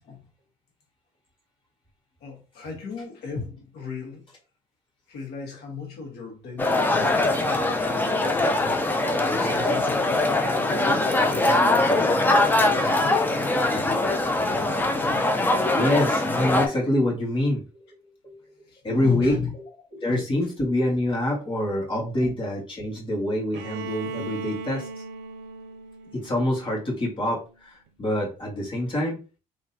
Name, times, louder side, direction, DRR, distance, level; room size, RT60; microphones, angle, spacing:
voice 1, 2.2-4.2 5.1-8.6 9.4-13.0 15.0-15.1 18.7-19.5 20.1-20.3 22.2-22.3, left 6 dB, 70° left, 1.6 m, -35 dB
sound 1, 6.6-16.7, left 2 dB, 10° left, 0.6 m, -22 dB
voice 2, 15.7-18.0 18.2-18.4 18.8-19.4 19.9-25.0 26.1-29.2, left 1 dB, 30° left, 1.8 m, -26 dB
Bowed string instrument, 23.5-27.4, right 4 dB, 85° right, 0.5 m, -38 dB
3.8 x 3.0 x 2.8 m
cardioid pair, 110°, 17 cm